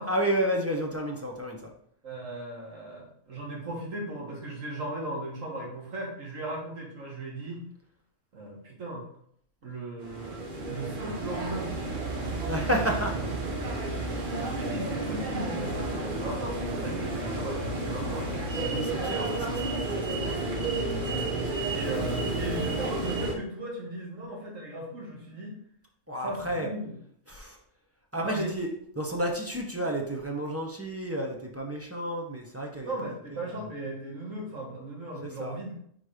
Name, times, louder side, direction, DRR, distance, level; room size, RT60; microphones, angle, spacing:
voice 1, 0.1-1.7 12.5-13.2 18.7-21.3 26.1-26.7 27.3-27.6 28.1-28.7 29.0-33.6 35.2-35.6, right 1 dB, 15° right, 0 dB, 0.8 m, -32 dB
voice 2, 2.0-7.7 8.3-9.1 9.6-11.9 12.5-12.8 13.2-13.3 14.3-18.9 21.7-25.6 26.2-26.9 28.2-28.5 32.8-35.7, right 1 dB, 85° right, -2 dB, 2.0 m, -37 dB
sound 1, 10.0-23.4, right 2 dB, 45° right, 1.0 m, -31 dB
4.7 x 3.9 x 5.0 m, 0.66 s
omnidirectional pair, 1.3 m